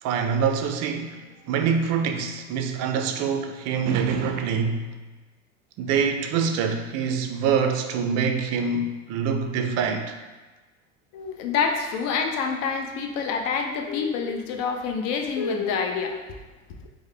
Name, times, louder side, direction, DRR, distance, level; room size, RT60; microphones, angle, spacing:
voice 1, 0.0-4.9 5.8-10.1, right 6 dB, 45° right, 6 dB, 0.5 m, -25 dB
voice 2, 11.1-16.3, left 5 dB, 45° left, 4 dB, 0.6 m, -27 dB
4.7 x 2.1 x 3.3 m, 1.2 s
hypercardioid pair, 80°, 38 cm